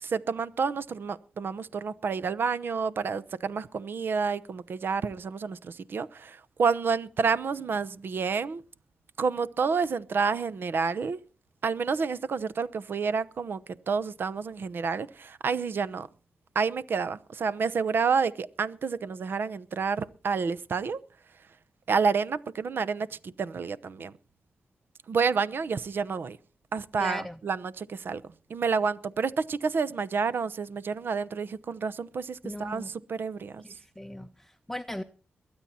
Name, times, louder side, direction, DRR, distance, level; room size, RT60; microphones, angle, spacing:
voice 1, 0.0-8.6 9.2-11.2 11.6-13.6 13.9-16.1 16.5-21.0 21.9-24.1 25.1-26.4 26.7-28.2 28.5-33.6, right 5 dB, 70° right, 0.9 m, -29 dB
voice 2, 27.0-27.4 32.4-32.9 33.6-35.0, left 1 dB, 10° left, 0.7 m, -38 dB
22.5 x 8.9 x 4.3 m
cardioid pair, 65°, 4 cm